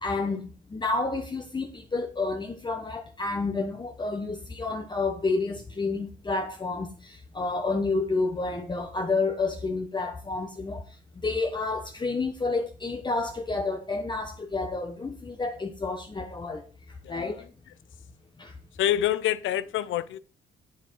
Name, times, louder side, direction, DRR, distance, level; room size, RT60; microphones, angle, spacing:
voice 1, 0.0-10.9 11.2-16.6 17.1-17.4 18.4-18.5, left 3 dB, 20° left, 0.9 m, -30 dB
voice 2, 17.0-17.5 18.8-20.2, left 12 dB, 75° left, 0.6 m, -27 dB
7.9 x 7.2 x 4.5 m
cardioid pair, 90°, 20 cm